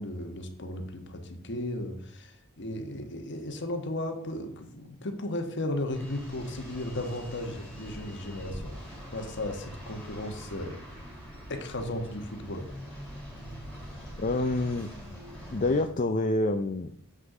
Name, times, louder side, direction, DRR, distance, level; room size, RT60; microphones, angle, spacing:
voice 1, 0.0-8.9 9.1-10.8 11.5-12.6, left 1 dB, 55° left, 5 dB, 1.4 m, -35 dB
sound 1, 5.9-15.8, equal, 5° left, 2.9 m, -43 dB
voice 2, 14.2-14.9 15.5-17.0, left 2 dB, 35° left, 6 dB, 0.5 m, -27 dB
7.5 x 6.5 x 6.0 m, 0.64 s
head